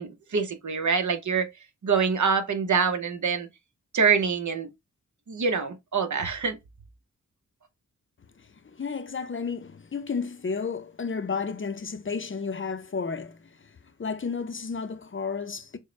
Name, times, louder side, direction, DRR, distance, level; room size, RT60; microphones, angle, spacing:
voice 1, 0.0-1.5 1.8-3.5 3.9-4.7 5.3-6.6, right 5 dB, 65° right, 0.9 m, -25 dB
voice 2, 8.4-15.8, left 5 dB, 40° left, 0.6 m, -32 dB
6.4 x 2.2 x 3.2 m
wide cardioid pair, 75°, 31 cm